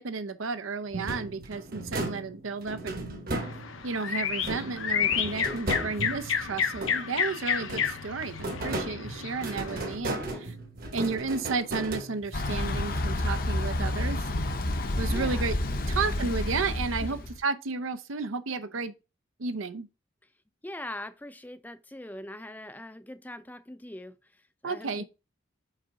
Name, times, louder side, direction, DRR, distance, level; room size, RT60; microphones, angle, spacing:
voice 1, 0.0-3.0 3.8-10.2 10.9-14.3 15.0-15.5 15.9-18.9 19.4-19.9 24.6-25.0, right 4 dB, 90° right, 0.7 m, -32 dB
sound 1, 0.9-4.0 4.4-7.2 7.6-12.5, right 1 dB, 50° right, 1.1 m, -36 dB
sound 2, 3.4-10.0, left 7 dB, 85° left, 0.9 m, -31 dB
voice 2, 10.2-10.5 15.1-15.5 15.8-16.3 17.0-17.3 20.6-25.0, left 1 dB, 10° left, 0.4 m, -42 dB
Thunder / Bicycle, 12.3-17.4, left 1 dB, 45° left, 0.7 m, -29 dB
5.6 x 4.7 x 3.8 m
head